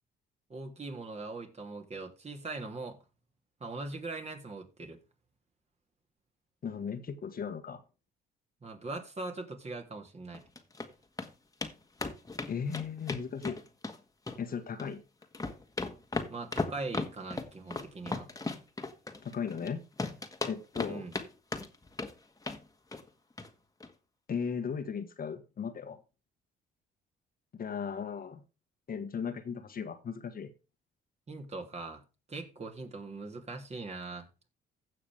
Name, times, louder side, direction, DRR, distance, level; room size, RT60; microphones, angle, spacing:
voice 1, 0.5-3.0 3.6-5.0 8.6-10.4 16.3-18.3 20.9-21.1 31.3-32.0 32.3-34.3, right 3 dB, 30° right, 3.0 m, -41 dB
voice 2, 6.6-7.8 12.5-13.6 14.4-15.0 19.2-19.8 20.5-21.0 24.3-26.0 27.5-28.4 28.9-30.5, left 6 dB, 45° left, 1.5 m, -36 dB
sound 1, 10.3-10.9 11.2-11.3 11.6-11.7 12.0-14.0 14.3-14.9 15.2-19.7 20.0-21.3 21.5-22.1 22.4-22.6 22.9-23.1 23.4-23.5 23.8-23.9, left 3 dB, 15° left, 1.7 m, -36 dB
16.0 x 5.9 x 3.5 m
supercardioid pair, 65°, 20 cm